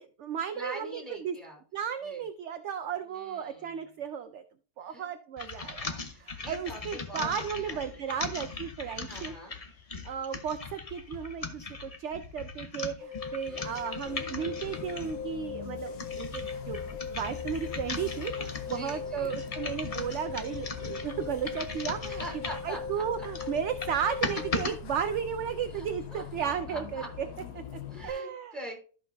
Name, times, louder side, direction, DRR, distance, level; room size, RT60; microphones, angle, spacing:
voice 1, 0.0-1.4 1.7-4.4 4.8-9.4 10.0-16.8 17.1-22.2 22.6-27.3 27.5-28.6, right 8 dB, 65° right, 9 dB, 0.7 m, -34 dB
voice 2, 0.5-1.6 2.0-2.2 3.0-3.8 4.8-5.1 6.1-7.8 8.1-8.3 9.1-9.5 13.4-14.0 18.6-19.4 22.1-23.0 23.4-23.5 25.7-27.1 27.9-28.8, equal, ahead, -1 dB, 3.2 m, -44 dB
sound 1, 5.4-15.2 15.8-22.7 23.2-24.7, left 3 dB, 30° left, 0.7 m, -39 dB
sound 2, 13.0-24.7, left 5 dB, 50° left, 1.9 m, -40 dB
Bus, 14.0-28.1, left 7 dB, 90° left, 1.5 m, -44 dB
13.5 x 5.8 x 2.7 m, 0.39 s
omnidirectional pair, 1.7 m